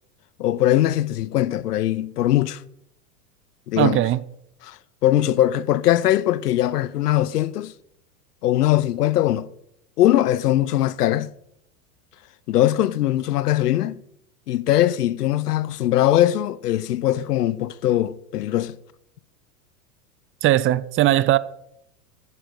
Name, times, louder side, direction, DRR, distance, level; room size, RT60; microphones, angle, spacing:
voice 1, 0.4-2.6 3.7-4.0 4.6-7.7 8.4-9.5 10.0-11.3 12.5-14.0 14.5-18.8, left 13 dB, 90° left, 0.8 m, -21 dB
voice 2, 3.8-4.2 20.4-21.4, right 14 dB, 30° right, 0.5 m, -19 dB
10.5 x 10.0 x 6.4 m
hypercardioid pair, 110°, 46 cm